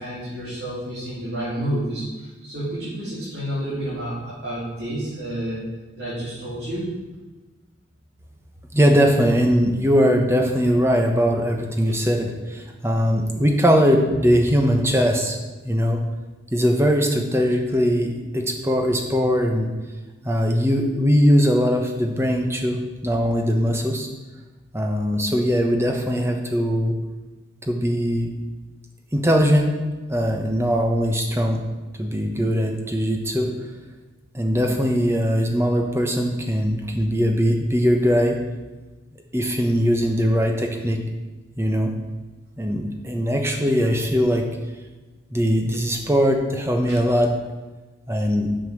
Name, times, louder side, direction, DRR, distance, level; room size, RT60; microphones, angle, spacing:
voice 1, 0.0-5.6 6.0-6.9, right 1 dB, 60° right, -10 dB, 3.4 m, -29 dB
voice 2, 8.7-15.4 15.6-16.0 16.5-19.7 20.2-24.1 24.7-27.0 27.6-28.3 29.1-29.8 30.1-31.6 32.0-33.5 34.3-38.4 39.3-41.0 41.6-41.9 42.6-44.5 45.3-47.4 48.1-48.6, equal, 15° right, 3 dB, 1.0 m, -20 dB
7.7 x 7.0 x 6.4 m, 1.2 s
head